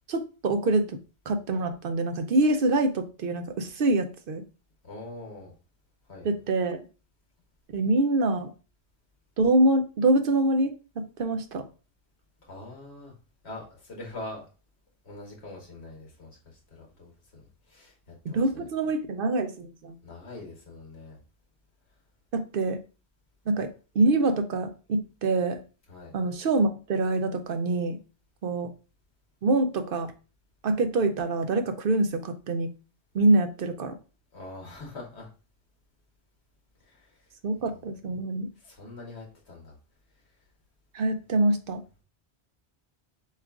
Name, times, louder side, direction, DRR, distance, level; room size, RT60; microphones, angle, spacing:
voice 1, 0.1-1.0 1.3-4.4 6.2-6.8 7.7-8.5 9.4-11.7 18.3-19.9 22.3-22.8 23.5-25.6 26.1-28.0 28.4-28.7 29.4-30.1 30.6-32.7 33.1-34.0 37.4-38.5 40.9-41.8, right 2 dB, 60° right, 7 dB, 0.7 m, -25 dB
voice 2, 4.8-5.5 6.1-6.3 12.5-13.1 13.4-14.4 15.0-17.4 17.7-18.7 20.0-21.2 25.9-26.1 34.3-35.3 36.8-37.8 38.6-39.8, left 2 dB, 85° left, -1 dB, 1.7 m, -43 dB
7.3 x 2.5 x 2.4 m, 0.34 s
omnidirectional pair, 1.1 m